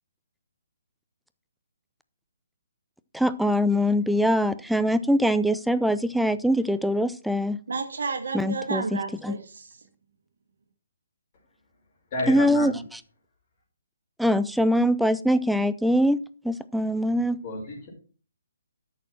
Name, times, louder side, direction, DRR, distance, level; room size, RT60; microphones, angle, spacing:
voice 1, 3.1-7.6 8.3-9.4 12.3-13.0 14.2-16.2 16.4-17.4, equal, ahead, 13 dB, 0.4 m, -23 dB
voice 2, 7.7-9.7, right 4 dB, 60° right, 5 dB, 1.7 m, -31 dB
voice 3, 12.1-12.8 17.4-17.9, left 2 dB, 35° left, -1 dB, 5.2 m, -31 dB
13.0 x 6.6 x 4.4 m, 0.39 s
figure-of-eight pair, 135°, 0 cm